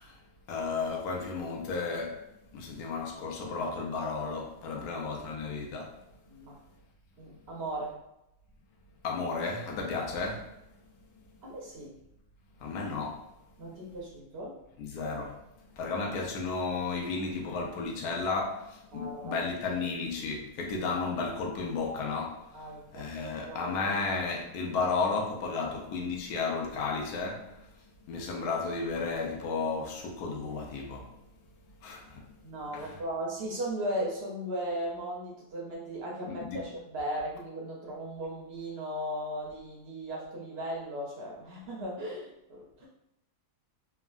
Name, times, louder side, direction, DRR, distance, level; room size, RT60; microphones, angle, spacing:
voice 1, 0.0-2.3 2.5-6.0 9.0-10.8 11.1-11.4 12.6-13.3 14.8-31.2 31.8-32.3 32.7-33.0 36.3-36.6, left 4 dB, 80° left, 1.1 m, -33 dB
voice 2, 6.3-6.6 7.2-7.9 11.4-12.0 13.6-14.6 18.9-19.4 19.7-19.8 22.5-23.1 23.5-23.7 32.4-42.9, right 1 dB, 65° right, 0.6 m, -37 dB
3.5 x 2.1 x 2.3 m
omnidirectional pair, 1.6 m